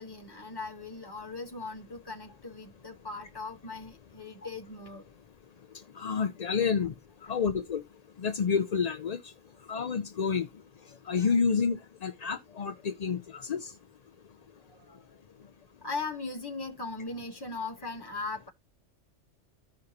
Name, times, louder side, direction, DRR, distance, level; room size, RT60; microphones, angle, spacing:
voice 1, 0.0-5.0 7.3-7.4 14.6-15.5 15.8-18.5, left 3 dB, 20° left, 1.5 m, -39 dB
voice 2, 6.0-6.9 7.3-7.8 8.2-9.3 9.7-10.5 11.1-13.7, left 6 dB, 50° left, 0.5 m, -29 dB
14.5 x 5.1 x 2.8 m
omnidirectional pair, 1.3 m